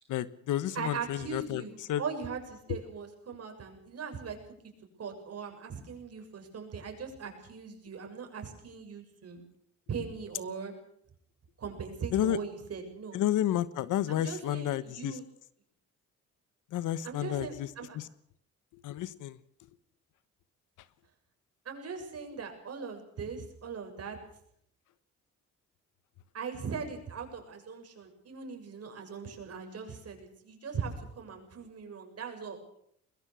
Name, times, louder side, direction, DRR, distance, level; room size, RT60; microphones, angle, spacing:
voice 1, 0.1-2.0 2.7-2.8 12.1-12.4 13.1-15.2 16.7-17.7 17.9-18.1 18.7-19.4, left 12 dB, 85° left, 16 dB, 1.3 m, -31 dB
voice 2, 0.8-4.4 5.0-9.4 9.9-10.7 11.6-13.2 14.1-15.2 17.0-18.0 21.7-24.2 26.3-32.6, right 5 dB, 55° right, 4 dB, 7.2 m, -40 dB
22.0 x 21.5 x 6.2 m, 0.68 s
cardioid pair, 90°, 30 cm